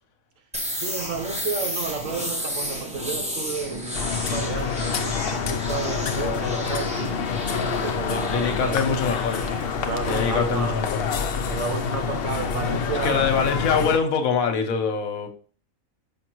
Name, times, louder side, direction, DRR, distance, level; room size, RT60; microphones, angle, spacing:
sound 1, 0.5-12.2, equal, 5° right, 0.9 m, -34 dB
voice 1, 0.8-3.8 4.2-5.2 5.4-7.1 7.5-9.0 9.9-10.8 11.5-13.4, right 4 dB, 70° right, 1.3 m, -31 dB
sound 2, 2.0-11.5, right 1 dB, 40° right, 2.7 m, -41 dB
sound 3, 3.9-14.0, left 6 dB, 55° left, 0.7 m, -27 dB
voice 2, 8.1-9.4 10.0-11.0 13.0-15.3, left 6 dB, 80° left, 1.3 m, -24 dB
6.3 x 5.2 x 3.0 m
omnidirectional pair, 1.5 m